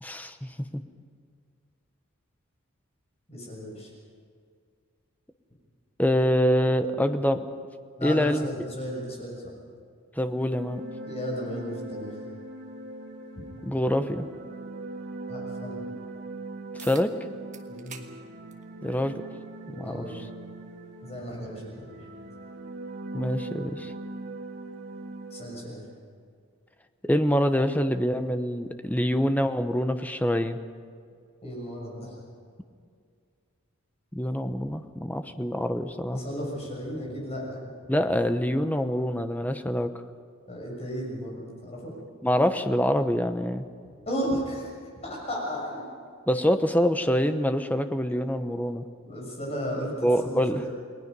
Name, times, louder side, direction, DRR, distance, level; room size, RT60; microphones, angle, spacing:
voice 1, 0.0-0.8 6.0-7.5 8.0-8.5 10.2-10.8 13.6-14.3 15.9-16.0 16.7-17.1 18.8-19.2 19.8-20.1 23.1-23.9 27.0-30.6 34.1-36.2 37.9-39.9 42.2-43.7 46.3-48.9 50.0-50.6, equal, 10° left, 8 dB, 0.9 m, -25 dB
voice 2, 3.3-3.9 8.0-9.5 11.0-12.2 15.3-15.8 17.7-18.0 19.8-20.2 21.0-22.1 25.3-25.8 31.4-32.2 36.1-37.7 40.4-41.9 44.0-44.7 45.0-45.8 49.0-50.7, equal, 30° left, -2 dB, 6.7 m, -34 dB
sound 1, 10.3-26.0, right 2 dB, 55° right, 2.6 m, -41 dB
sound 2, 16.8-17.1 17.5-18.1 18.5-18.6 19.7-19.8 24.7-24.8, right 7 dB, 35° right, 1.5 m, -45 dB
29.5 x 20.0 x 5.4 m, 2.2 s
head